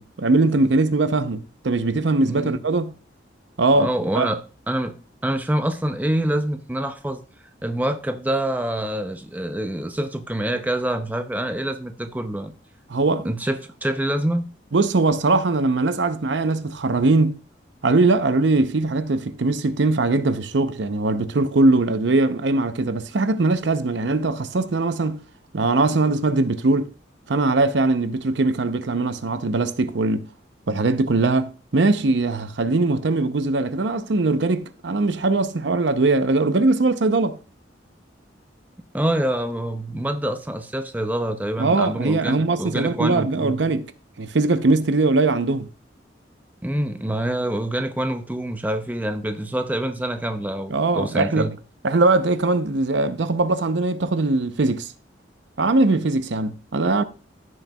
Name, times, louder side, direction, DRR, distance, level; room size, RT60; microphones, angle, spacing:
voice 1, 0.0-2.9 3.6-3.9 4.1-4.3 12.9-13.3 14.7-17.4 17.8-25.2 25.5-26.9 27.3-30.3 30.7-37.4 41.6-43.9 44.2-45.7 50.7-51.5 51.8-54.9 55.6-57.0, right 3 dB, 75° right, 0.7 m, -21 dB
voice 2, 2.3-2.6 3.8-4.4 4.7-7.2 7.6-12.5 13.2-14.5 38.9-43.6 46.6-51.5, right 1 dB, 10° right, 0.6 m, -26 dB
14.5 x 6.3 x 2.3 m
head